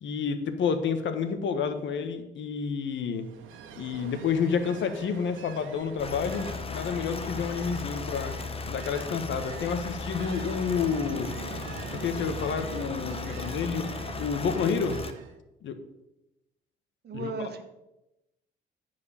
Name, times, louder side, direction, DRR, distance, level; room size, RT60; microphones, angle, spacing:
voice 1, 0.0-3.3 3.8-8.3 8.7-11.3 11.9-13.9 14.2-15.0 15.6-15.7 17.1-17.3, left 6 dB, 70° left, 9 dB, 1.4 m, -29 dB
Ocean, 3.2-15.3, right 6 dB, 90° right, 1.3 m, -44 dB
sound 1, 6.0-15.1, left 4 dB, 30° left, 1.1 m, -36 dB
voice 2, 17.0-17.6, right 2 dB, 55° right, 7 dB, 1.7 m, -35 dB
14.0 x 4.9 x 7.4 m, 0.93 s
cardioid pair, 90°, 20 cm